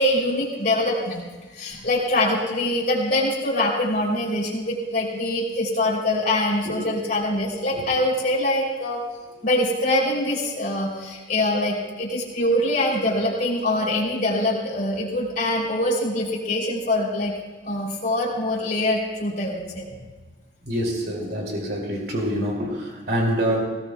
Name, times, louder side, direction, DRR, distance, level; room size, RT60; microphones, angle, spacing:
voice 1, 0.0-9.0 9.4-17.4 17.6-19.9, left 1 dB, 50° left, -3 dB, 3.0 m, -24 dB
voice 2, 20.7-23.7, equal, 60° right, 0 dB, 2.5 m, -26 dB
18.0 x 18.0 x 2.2 m, 1.3 s
head